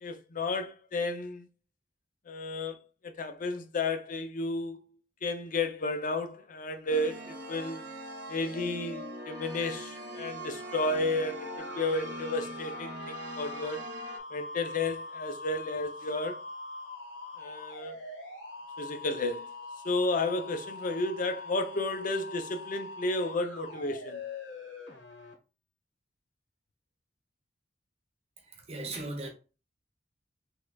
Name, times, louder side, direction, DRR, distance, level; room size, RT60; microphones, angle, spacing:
voice 1, 0.0-1.5 2.3-4.8 5.2-7.9 8.3-13.8 14.3-16.4 17.4-18.0 18.8-19.5 19.8-24.2, left 2 dB, 45° left, 0.5 m, -32 dB
sound 1, 6.9-14.2, right 1 dB, 65° right, 0.7 m, -41 dB
sound 2, 11.6-25.3, left 3 dB, 85° left, 1.1 m, -43 dB
voice 2, 28.5-29.3, right 2 dB, 35° right, 0.8 m, -37 dB
3.5 x 3.2 x 2.3 m
head